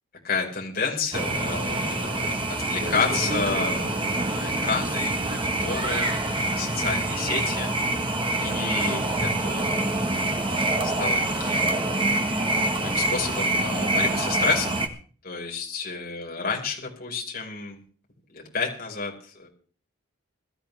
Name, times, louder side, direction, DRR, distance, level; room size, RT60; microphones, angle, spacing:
voice 1, 0.2-7.7 8.4-9.9 10.8-12.3 12.8-14.8 15.2-17.8 18.3-19.5, left 4 dB, 45° left, -1 dB, 5.0 m, -31 dB
sound 1, 1.1-14.9, right 2 dB, 25° right, 1.4 m, -26 dB
sound 2, 2.8-10.3, right 2 dB, 80° right, 3.8 m, -40 dB
22.0 x 13.5 x 3.5 m, 0.43 s
head